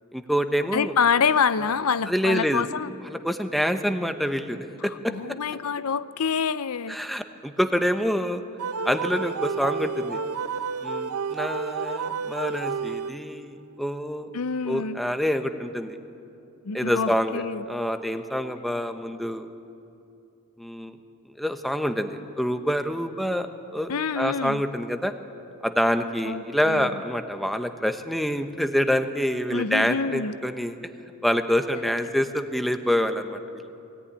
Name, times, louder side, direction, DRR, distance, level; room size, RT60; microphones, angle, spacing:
voice 1, 0.1-0.9 1.6-1.7 2.1-2.6 3.1-4.6 4.8-5.1 6.9-8.4 8.8-10.2 10.8-14.3 14.7-16.0 16.7-19.5 20.6-21.0 21.4-23.5 23.7-23.9 24.2-25.1 25.6-30.8 31.2-33.6, equal, ahead, 7 dB, 0.9 m, -26 dB
voice 2, 0.7-2.9 4.8-7.0 14.3-15.0 16.6-17.6 23.9-24.6 26.2-26.9 29.5-30.3, left 6 dB, 80° left, 15 dB, 0.7 m, -26 dB
sound 1, 8.6-13.5, right 5 dB, 75° right, 0.7 m, -30 dB
22.0 x 17.5 x 9.9 m, 2.7 s
head